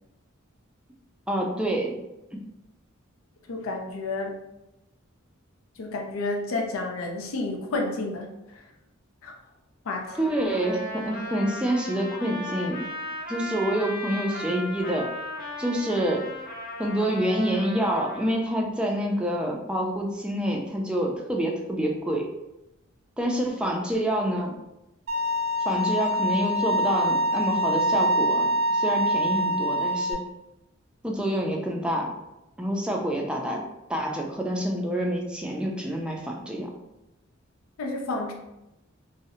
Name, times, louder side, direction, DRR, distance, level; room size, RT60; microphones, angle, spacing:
voice 1, 1.3-2.0 2.3-2.4 10.2-12.9 13.3-15.1 15.6-16.2 16.8-22.3 23.2-24.6 25.7-30.2 31.0-32.1 32.6-33.6 33.9-36.7, equal, 5° right, 0 dB, 0.3 m, -27 dB
voice 2, 3.5-4.3 5.8-8.6 9.2-9.3 9.9-10.3 37.8-38.3, left 2 dB, 90° left, 2 dB, 0.5 m, -31 dB
Trumpet, 10.0-18.3, left 1 dB, 45° left, 1.1 m, -36 dB
Bowed string instrument, 25.1-30.1, equal, 75° right, 0.5 m, -24 dB
2.6 x 2.0 x 2.6 m, 0.91 s
head